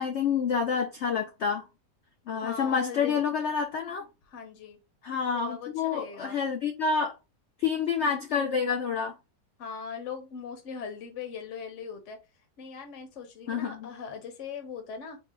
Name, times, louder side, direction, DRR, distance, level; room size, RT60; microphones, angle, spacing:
voice 1, 0.0-1.6 2.3-4.1 5.0-7.1 7.6-9.2 13.5-13.9, left 6 dB, 85° left, 0.6 m, -28 dB
voice 2, 2.3-3.2 4.3-4.8 5.3-6.4 9.6-12.2 12.6-15.2, left 6 dB, 50° left, 1.1 m, -40 dB
4.1 x 2.2 x 3.7 m
omnidirectional pair, 1.8 m